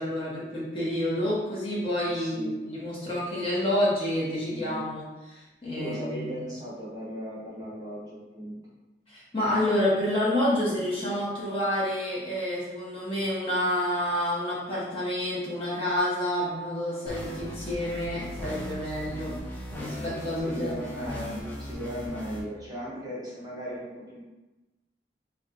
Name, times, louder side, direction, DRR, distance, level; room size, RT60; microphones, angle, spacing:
voice 1, 0.0-6.4 9.1-19.4 19.8-20.7, left 1 dB, 30° left, -7 dB, 0.9 m, -29 dB
voice 2, 2.1-2.6 4.5-4.8 5.7-8.6 20.4-24.2, equal, 20° right, -7 dB, 0.7 m, -37 dB
sound 1, 17.1-22.4, equal, 10° left, 0.5 m, -38 dB
4.2 x 2.3 x 2.4 m, 1.1 s
head